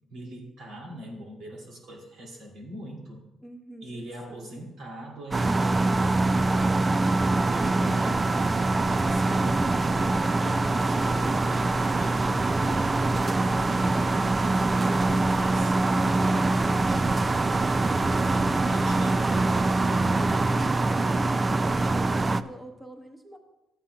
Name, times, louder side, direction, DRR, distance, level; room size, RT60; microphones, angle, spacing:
voice 1, 0.1-3.2 3.8-6.9 7.2-13.0 13.5-17.3 18.4-20.6, right 1 dB, 80° right, -2 dB, 2.5 m, -41 dB
voice 2, 3.4-4.5 21.6-23.4, right 1 dB, 5° right, 4 dB, 1.0 m, -44 dB
sound 1, 5.3-22.4, right 2 dB, 30° right, 0.3 m, -24 dB
13.0 x 8.8 x 2.3 m, 0.95 s
cardioid pair, 90°, 0 cm